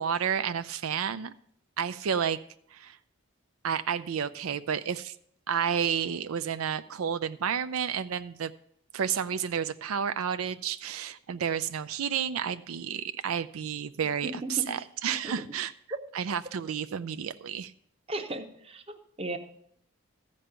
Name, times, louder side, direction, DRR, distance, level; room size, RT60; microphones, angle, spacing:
voice 1, 0.0-1.3 1.8-2.4 2.7-3.0 3.6-5.1 5.5-8.5 8.9-15.7 16.1-17.7, right 8 dB, 80° right, 12 dB, 0.4 m, -31 dB
voice 2, 14.2-14.9 15.2-15.5 18.1-18.8 19.2-19.4, right 1 dB, 25° right, 7 dB, 0.9 m, -36 dB
14.5 x 5.3 x 8.8 m, 0.69 s
head